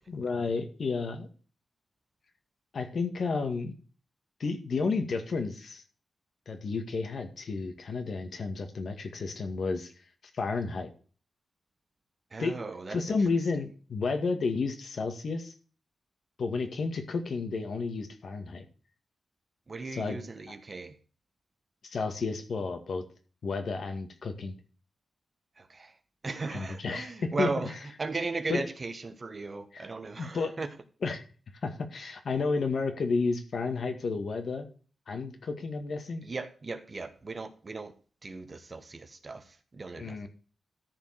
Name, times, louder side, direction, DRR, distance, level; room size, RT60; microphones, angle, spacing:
voice 1, 0.1-1.3 2.7-3.7 4.4-5.8 6.5-9.9 10.4-10.9 12.4-12.5 12.9-15.5 16.4-18.7 19.9-20.2 21.8-23.0 23.4-24.5 26.5-27.5 28.5-28.6 29.7-29.9 30.2-30.5 31.0-31.2 31.6-34.7 35.1-36.2 40.0-40.3, left 4 dB, 60° left, 7 dB, 2.0 m, -31 dB
voice 2, 12.3-13.2 19.7-21.0 25.6-25.9 26.2-27.7 28.0-30.7 36.2-37.9 38.2-40.3, right 3 dB, 35° right, 9 dB, 1.3 m, -37 dB
14.0 x 5.2 x 6.5 m, 0.39 s
wide cardioid pair, 125°, 0 cm